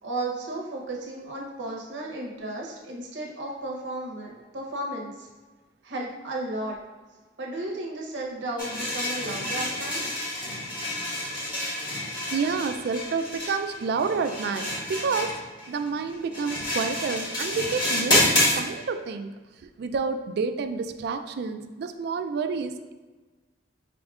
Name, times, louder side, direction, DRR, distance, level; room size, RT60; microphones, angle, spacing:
voice 1, 0.0-5.3 5.8-6.8 7.4-10.0, right 2 dB, 80° right, -2 dB, 0.8 m, -34 dB
sound 1, 8.6-18.6, left 1 dB, 25° left, 1.4 m, -28 dB
voice 2, 12.3-15.3 15.7-19.3 19.8-22.9, right 5 dB, 60° right, 9 dB, 0.3 m, -29 dB
5.1 x 3.5 x 2.4 m, 1.3 s
head